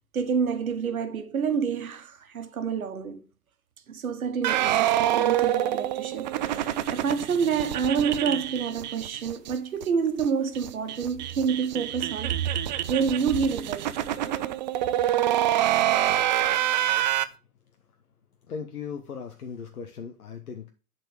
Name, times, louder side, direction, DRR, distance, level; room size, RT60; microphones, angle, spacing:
voice 1, 0.1-3.2 3.9-13.9 14.2-14.5, right 6 dB, 65° right, 1.4 m, -28 dB
sound 1, 4.4-9.5 9.8-9.9 10.2-10.3 10.6-17.3, right 12 dB, 30° right, 0.4 m, -26 dB
voice 2, 18.5-20.7, left 6 dB, 70° left, 1.1 m, -37 dB
10.5 x 4.5 x 5.0 m
figure-of-eight pair, 100°, 45 cm